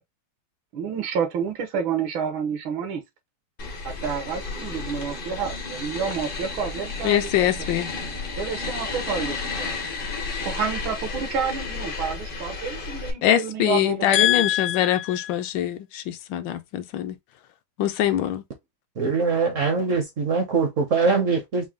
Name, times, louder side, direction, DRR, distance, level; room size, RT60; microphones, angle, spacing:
voice 1, 0.7-3.0 3.8-7.7 8.4-9.8 10.4-14.3, right 6 dB, 80° right, 1.7 m, -29 dB
sound 1, 3.6-13.1, left 4 dB, 55° left, 0.5 m, -32 dB
voice 2, 7.0-7.9 13.2-17.1 17.8-18.4, left 11 dB, 75° left, 1.2 m, -23 dB
voice 3, 19.0-21.7, right 4 dB, 55° right, 0.9 m, -22 dB
4.7 x 2.2 x 3.5 m
omnidirectional pair, 2.2 m